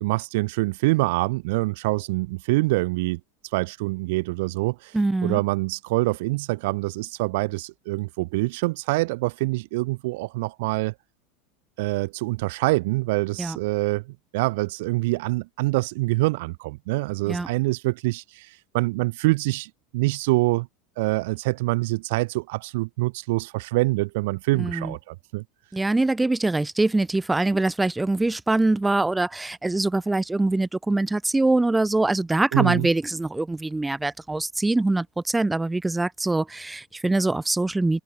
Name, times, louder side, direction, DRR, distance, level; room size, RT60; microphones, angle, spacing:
voice 1, 0.0-3.2 3.5-5.0 5.2-10.9 11.8-14.0 14.3-20.7 21.0-25.4 32.5-32.9, right 22 dB, 60° right, 0.4 m, -25 dB
voice 2, 4.9-5.4 13.4-13.6 17.3-17.5 24.5-25.0 25.7-38.0, right 2 dB, 10° right, 0.8 m, -23 dB
open air
figure-of-eight pair, 80°, 0 cm